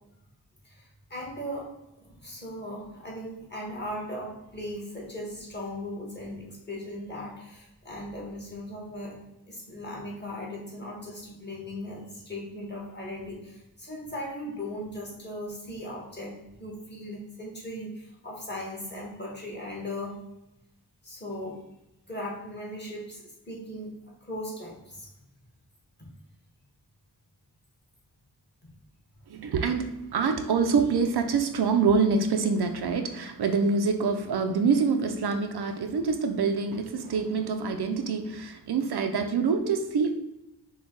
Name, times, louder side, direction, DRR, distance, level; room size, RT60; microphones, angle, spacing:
voice 1, 0.6-1.7 2.0-9.2 9.5-16.3 16.6-20.2 21.0-21.6 22.1-23.9 24.2-25.1 26.0-26.1, left 1 dB, 25° left, -3 dB, 1.5 m, -38 dB
voice 2, 29.3-40.2, right 5 dB, 70° right, 6 dB, 0.5 m, -26 dB
6.0 x 2.3 x 3.8 m, 0.92 s
wide cardioid pair, 120°, 41 cm